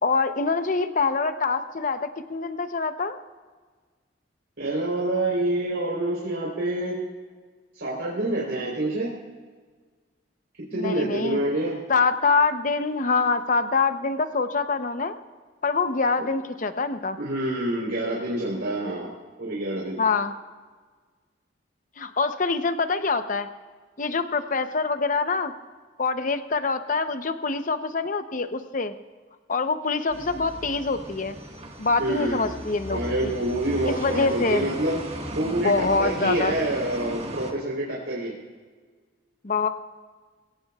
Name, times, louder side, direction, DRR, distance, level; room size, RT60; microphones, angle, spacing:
voice 1, 0.0-3.2 10.7-11.4 11.9-15.2 15.6-17.2 20.0-20.3 22.0-23.5 24.0-25.5 26.0-28.9 29.5-31.4 31.8-33.3 33.8-34.7 35.6-36.5 39.4-39.7, left 4 dB, 45° left, 9 dB, 0.8 m, -25 dB
voice 2, 4.6-7.0 7.7-9.1 10.7-11.8 16.2-16.3 17.2-20.0 32.0-32.5 32.9-35.0 35.3-38.3, right 1 dB, 85° right, -5 dB, 3.8 m, -27 dB
sound 1, 30.1-37.5, right 1 dB, 35° right, 1.6 m, -37 dB
22.0 x 17.0 x 2.4 m, 1.5 s
head